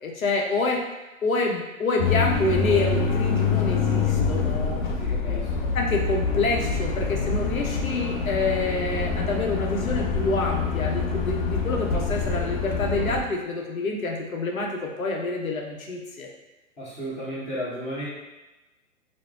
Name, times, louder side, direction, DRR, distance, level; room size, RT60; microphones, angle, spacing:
voice 1, 0.0-0.8 1.2-4.8 5.2-5.4 5.7-16.3, left 3 dB, 75° left, 0 dB, 0.7 m, -27 dB
sound 1, 2.0-13.2, left 5 dB, 40° left, 0.4 m, -26 dB
voice 2, 5.0-5.5 16.8-18.1, equal, 15° left, -8 dB, 1.0 m, -33 dB
4.7 x 2.0 x 2.4 m, 1.1 s
figure-of-eight pair, 110°, 41 cm